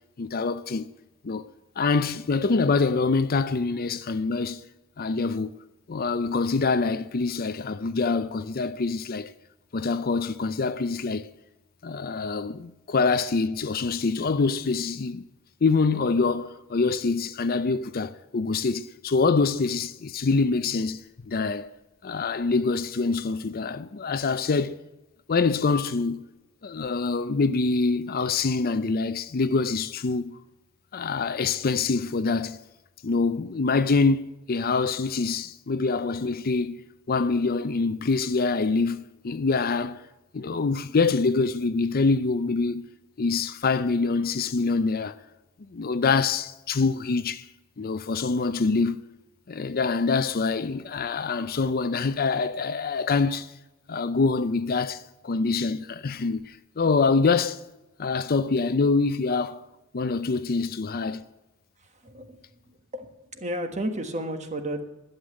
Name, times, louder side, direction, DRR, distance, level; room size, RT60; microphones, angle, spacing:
voice 1, 0.2-0.9 1.2-1.5 1.8-4.6 5.0-5.6 5.9-9.3 9.7-11.3 11.8-15.2 15.6-21.7 22.0-24.8 25.3-26.2 26.6-30.3 30.9-32.6 33.0-40.1 40.3-42.8 43.2-45.2 45.7-47.4 47.8-49.1 49.5-53.5 53.9-57.6 58.0-59.6 59.9-61.2, left 4 dB, 45° left, 0.5 m, -25 dB
voice 2, 61.8-64.8, right 1 dB, 35° right, 1.5 m, -33 dB
12.0 x 8.1 x 8.9 m
head